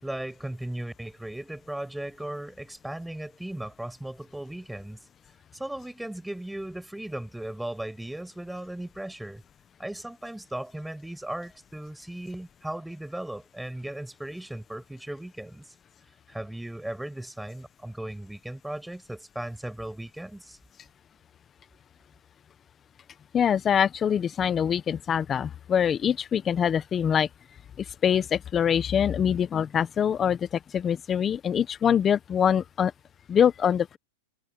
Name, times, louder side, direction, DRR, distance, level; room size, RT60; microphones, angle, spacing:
voice 1, 0.0-5.0 5.5-9.4 9.8-15.7 16.3-20.6, right 1 dB, 5° right, 5.6 m, -37 dB
voice 2, 23.3-27.3 27.8-32.9 33.3-34.0, left 8 dB, 20° left, 1.1 m, -24 dB
supercardioid pair, 150°, 0 cm